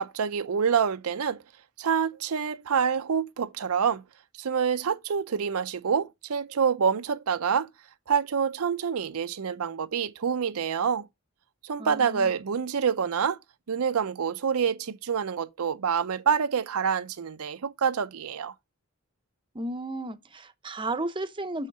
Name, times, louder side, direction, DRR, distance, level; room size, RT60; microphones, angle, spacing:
voice 1, 0.0-1.4 1.8-4.0 4.4-7.7 8.1-11.1 11.6-13.4 13.7-18.5, right 6 dB, 80° right, 0.5 m, -27 dB
voice 2, 11.8-12.3 19.5-21.7, right 2 dB, 25° right, 0.7 m, -33 dB
6.4 x 6.4 x 5.3 m
head